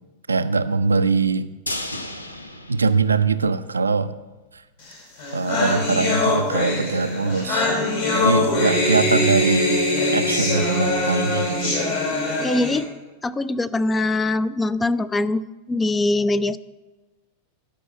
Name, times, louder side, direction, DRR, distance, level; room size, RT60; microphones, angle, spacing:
voice 1, 0.3-1.5 2.7-4.1 4.5-4.6 5.3-7.7 8.1-9.8 10.1-11.8, right 4 dB, 75° right, 13 dB, 0.5 m, -22 dB
sound 1, 1.7-3.8 4.1-4.2 4.6-4.7, left 1 dB, 80° left, 0.7 m, -34 dB
sound 2, 4.9-5.0 5.2-12.8, left 2 dB, 60° left, 3.7 m, -22 dB
voice 2, 12.4-12.9 13.2-15.4 15.7-16.6, left 2 dB, 15° left, 16 dB, 0.4 m, -22 dB
12.0 x 5.5 x 7.0 m, 1.2 s
figure-of-eight pair, 90°, 0 cm